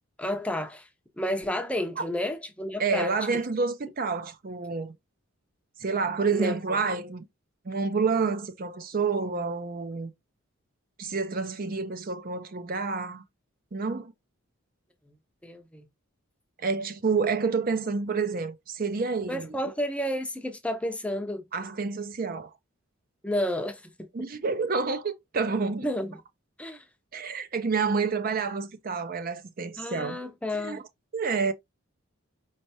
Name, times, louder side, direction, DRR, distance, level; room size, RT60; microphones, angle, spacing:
voice 1, 0.2-0.9 1.2-3.1 6.3-6.5 15.4-15.8 19.3-21.4 23.2-23.8 25.8-26.2 26.6-26.8 29.8-30.8, left 1 dB, 5° left, 0.6 m, -31 dB
voice 2, 2.8-4.9 5.8-7.3 7.7-10.1 11.0-13.2 13.7-14.1 16.6-19.5 21.5-22.5 24.1-25.9 27.1-30.2 30.6-30.8 31.1-31.5, right 4 dB, 40° right, 0.5 m, -28 dB
5.3 x 3.3 x 2.7 m
head